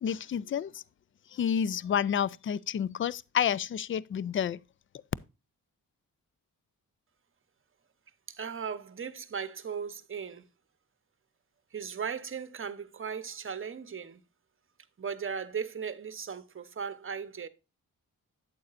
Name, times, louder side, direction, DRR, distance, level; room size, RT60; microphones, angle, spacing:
voice 1, 0.0-0.8 1.3-4.6, left 8 dB, 40° left, 0.4 m, -30 dB
voice 2, 8.3-10.5 11.7-14.2 15.0-17.5, right 6 dB, 40° right, 0.9 m, -37 dB
8.5 x 8.4 x 2.5 m
cardioid pair, 75°, 34 cm